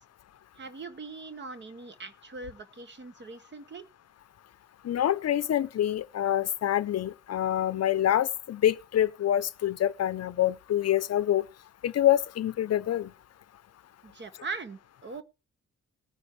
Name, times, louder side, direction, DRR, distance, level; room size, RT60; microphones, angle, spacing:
voice 1, 0.5-3.8 14.0-15.2, right 4 dB, 40° right, 1.2 m, -41 dB
voice 2, 4.8-11.5 11.8-13.1, left 11 dB, 60° left, 0.6 m, -26 dB
19.5 x 9.6 x 3.2 m
wide cardioid pair, 150°, 29 cm